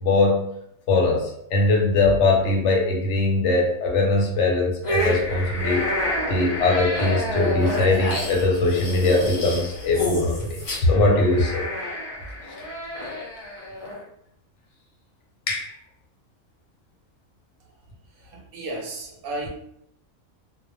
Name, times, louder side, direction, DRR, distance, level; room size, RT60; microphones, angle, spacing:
voice 1, 0.0-0.5 0.9-5.8 6.3-11.6 15.5-15.7, left 2 dB, 65° left, 0 dB, 0.9 m, -21 dB
sound 1, 4.8-14.0, left 1 dB, 40° left, 0.5 m, -29 dB
voice 2, 18.2-19.5, right 2 dB, 55° right, 0 dB, 0.7 m, -33 dB
2.4 x 2.0 x 2.9 m, 0.74 s
omnidirectional pair, 1.5 m